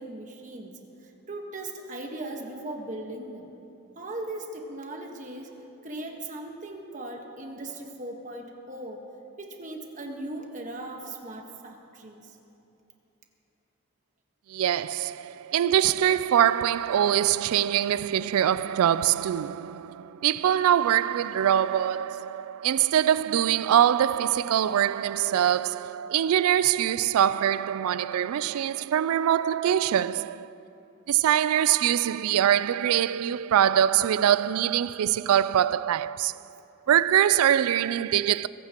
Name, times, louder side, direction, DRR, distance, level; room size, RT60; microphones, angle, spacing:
voice 1, 0.0-3.5 3.9-5.5 5.8-9.0 9.4-12.4, right 2 dB, 35° right, 1.3 m, -38 dB
voice 2, 14.5-30.5 31.1-36.4 36.9-38.5, right 10 dB, 85° right, 0.3 m, -23 dB
22.5 x 15.0 x 3.0 m
head